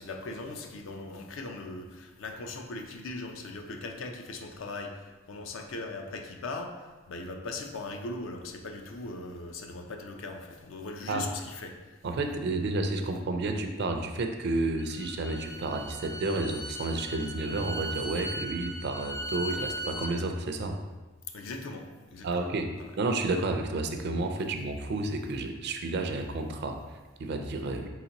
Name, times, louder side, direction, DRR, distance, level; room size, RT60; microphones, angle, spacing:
voice 1, 0.0-11.7 21.3-21.9 22.1-22.5 22.8-23.0, left 2 dB, 70° left, 3 dB, 0.5 m, -39 dB
voice 2, 12.0-20.8 22.2-22.7 23.0-27.9, right 2 dB, 55° right, 5 dB, 0.4 m, -31 dB
Bowed string instrument, 14.8-20.1, right 1 dB, 15° left, 0.3 m, -38 dB
4.3 x 3.9 x 2.9 m, 1.2 s
head